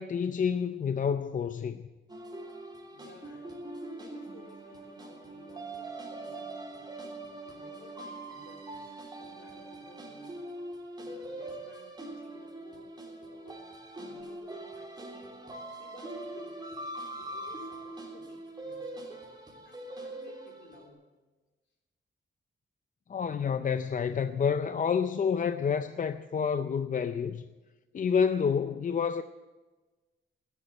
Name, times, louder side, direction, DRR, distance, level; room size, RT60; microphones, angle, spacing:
voice 1, 0.0-1.9 23.1-27.4 27.9-29.2, left 6 dB, 40° left, 0.5 m, -29 dB
sound 1, 2.1-20.8, right 2 dB, 20° right, 3.2 m, -42 dB
voice 2, 2.8-7.0 7.4-10.5 11.0-13.7 14.0-15.4 15.8-16.9 17.2-19.4 19.6-21.1, left 3 dB, 65° left, 4.1 m, -56 dB
14.5 x 11.0 x 8.7 m
wide cardioid pair, 130°, 20 cm